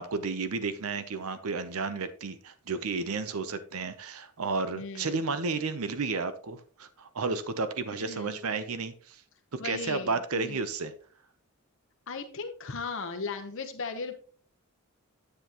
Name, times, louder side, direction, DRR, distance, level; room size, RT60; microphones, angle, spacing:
voice 1, 0.0-9.2 9.5-10.9, right 4 dB, 75° right, 12 dB, 0.7 m, -32 dB
voice 2, 4.8-5.3 8.0-8.3 9.6-10.6 12.1-14.1, left 4 dB, 60° left, 6 dB, 0.9 m, -37 dB
9.6 x 8.0 x 2.9 m, 0.43 s
head